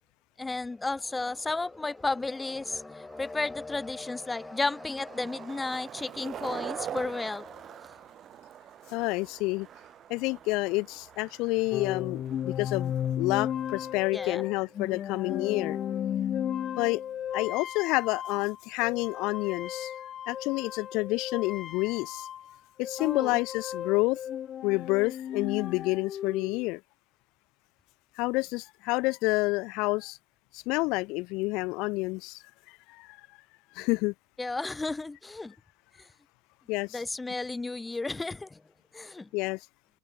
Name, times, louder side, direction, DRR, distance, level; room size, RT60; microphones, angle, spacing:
voice 1, 0.4-7.9 14.1-14.4 23.0-23.4 34.4-35.5 36.0-36.1 36.9-38.6 38.9-39.3, left 3 dB, 15° left, 1.2 m, -33 dB
Skateboard, 0.9-16.0, right 10 dB, 45° right, 2.3 m, -46 dB
voice 2, 8.9-9.7 10.1-15.8 16.8-17.0 17.3-19.9 20.3-22.3 22.8-24.2 24.6-26.8 28.2-30.2 30.5-32.4 32.7-33.2 33.7-34.1 36.7-37.0 39.3-39.6, left 24 dB, 65° left, 1.2 m, -29 dB
sound 1, 11.7-22.6 22.8-26.7, left 10 dB, 40° left, 0.5 m, -35 dB
open air
hypercardioid pair, 80°, 0 cm